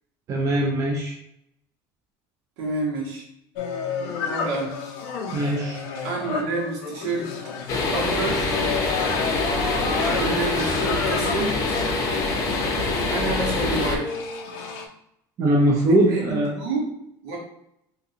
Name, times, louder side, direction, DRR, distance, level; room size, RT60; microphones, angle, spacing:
voice 1, 0.3-1.2 5.3-5.8 15.4-16.5, right 1 dB, 30° right, -2 dB, 0.6 m, -21 dB
voice 2, 2.6-3.2 4.2-4.8 6.0-7.3 7.9-8.6 10.0-11.8 13.0-14.1 16.0-16.2 16.5-16.9 17.2-17.4, right 3 dB, 80° right, -2 dB, 1.4 m, -28 dB
sound 1, 3.6-14.9, left 5 dB, 90° left, 0.6 m, -32 dB
sound 2, 7.7-14.0, left 3 dB, 35° left, 0.6 m, -24 dB
3.7 x 2.5 x 2.8 m, 0.77 s
cardioid pair, 165°, 10 cm